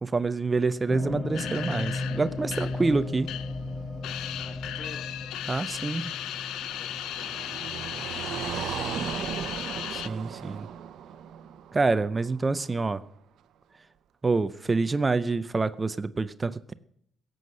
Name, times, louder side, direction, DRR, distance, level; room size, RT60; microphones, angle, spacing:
voice 1, 0.0-3.3 5.5-6.1 9.9-10.7 11.7-13.0 14.2-16.7, right 3 dB, 25° right, 14 dB, 0.6 m, -27 dB
sound 1, 0.9-9.8, left 2 dB, 15° left, 3.4 m, -36 dB
sound 2, 1.3-3.7 4.0-10.1, left 11 dB, 85° left, 0.5 m, -36 dB
voice 2, 4.4-5.1 6.8-7.6 8.1-9.4, left 5 dB, 45° left, 9 dB, 1.4 m, -48 dB
Car passing by, 5.6-12.7, right 9 dB, 75° right, 0.8 m, -37 dB
16.5 x 7.8 x 6.5 m, 0.71 s
cardioid pair, 90°, 0 cm